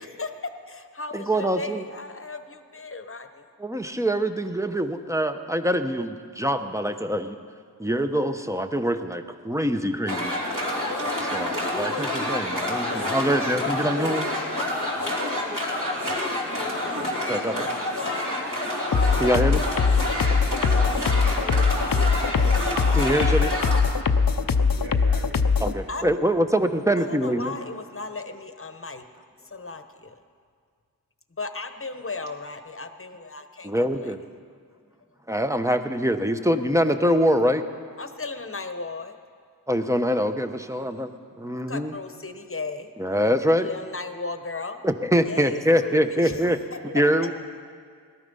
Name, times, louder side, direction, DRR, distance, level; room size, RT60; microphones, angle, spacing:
voice 1, 0.2-3.5 25.9-26.1 27.0-29.0 29.4-30.2 31.4-34.2 38.0-39.2 40.7-41.1 41.7-42.9 43.6-44.8 45.3-46.4, left 3 dB, 35° left, 8 dB, 1.0 m, -36 dB
voice 2, 1.1-1.8 3.6-7.4 7.8-10.3 11.2-14.3 17.3-17.7 19.2-19.6 22.9-23.5 25.6-27.5 33.6-34.2 35.3-37.6 39.7-41.1 41.4-41.9 43.0-43.7 44.8-46.6 46.9-47.3, equal, 10° right, 8 dB, 0.8 m, -24 dB
sound 1, 10.1-23.8, left 1 dB, 55° right, 3.3 m, -28 dB
sound 2, 18.9-25.7, left 5 dB, 60° left, 0.7 m, -21 dB
voice 3, 24.8-26.6 46.1-47.3, right 1 dB, 75° right, 0 dB, 2.0 m, -43 dB
18.0 x 13.0 x 5.5 m, 2.1 s
wide cardioid pair, 50°, 38 cm